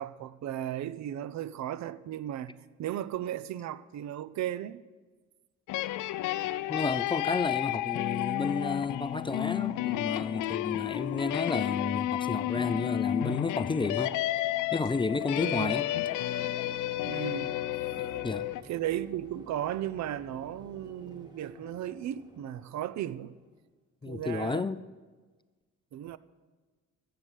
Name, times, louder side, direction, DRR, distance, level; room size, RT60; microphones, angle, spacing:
voice 1, 0.0-4.8 15.4-15.7 17.0-17.6 18.6-23.4 24.1-24.7 25.9-26.2, right 11 dB, 65° right, 0.6 m, -35 dB
sound 1, 5.7-18.6, left 14 dB, 85° left, 0.5 m, -31 dB
voice 2, 6.7-14.2 14.7-15.9 18.2-18.5 24.0-24.8, left 4 dB, 15° left, 0.4 m, -31 dB
sound 2, 14.6-23.6, equal, 15° right, 1.4 m, -52 dB
15.0 x 6.8 x 6.2 m
cardioid pair, 90°, 30 cm